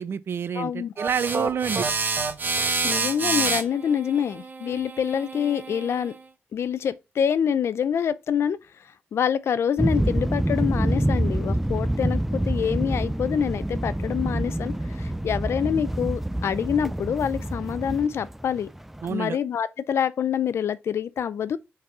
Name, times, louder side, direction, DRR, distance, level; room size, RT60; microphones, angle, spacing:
voice 1, 0.0-1.9 19.0-19.4, right 7 dB, 70° right, 0.5 m, -28 dB
voice 2, 0.6-0.9 2.8-6.1 6.5-18.7 19.1-21.6, left 8 dB, 80° left, 0.5 m, -26 dB
sound 1, 1.0-6.1, right 4 dB, 45° right, 1.1 m, -28 dB
sound 2, 9.8-19.1, right 1 dB, 5° right, 0.4 m, -26 dB
5.2 x 4.0 x 5.4 m
cardioid pair, 90°, 4 cm